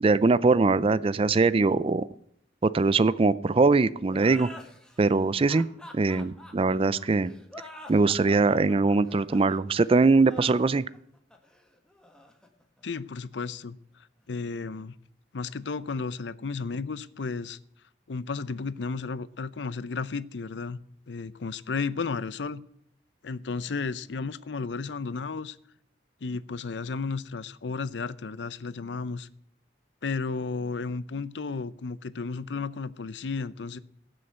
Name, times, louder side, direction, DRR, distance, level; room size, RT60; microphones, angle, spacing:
voice 1, 0.0-2.1 2.6-4.5 5.0-5.7 5.9-7.3 7.9-10.8, right 3 dB, 30° right, 18 dB, 0.4 m, -22 dB
sound 1, 4.1-13.4, left 1 dB, 5° left, 1.5 m, -48 dB
voice 2, 12.8-14.9 15.3-17.6 18.1-20.8 21.1-22.6 23.2-25.6 26.2-29.3 30.0-33.8, left 4 dB, 80° left, 17 dB, 0.6 m, -33 dB
17.0 x 6.5 x 7.9 m, 0.71 s
head